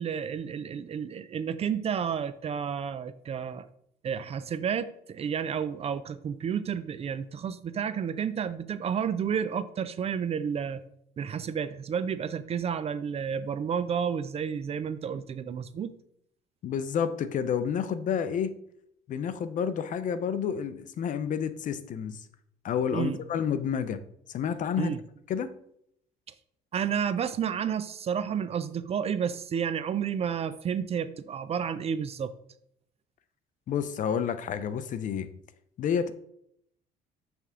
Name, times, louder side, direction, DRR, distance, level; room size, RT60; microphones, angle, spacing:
voice 1, 0.0-3.7 4.0-10.8 11.2-15.9 22.9-23.2 24.8-25.0 26.7-32.3, right 7 dB, 35° right, 14 dB, 0.4 m, -31 dB
voice 2, 16.6-18.5 19.1-22.2 22.6-24.0 24.3-24.9 25.3-25.6 33.7-35.3 35.8-36.1, left 7 dB, 50° left, 13 dB, 0.5 m, -29 dB
8.2 x 3.4 x 3.7 m, 0.71 s
cardioid pair, 110°, 17 cm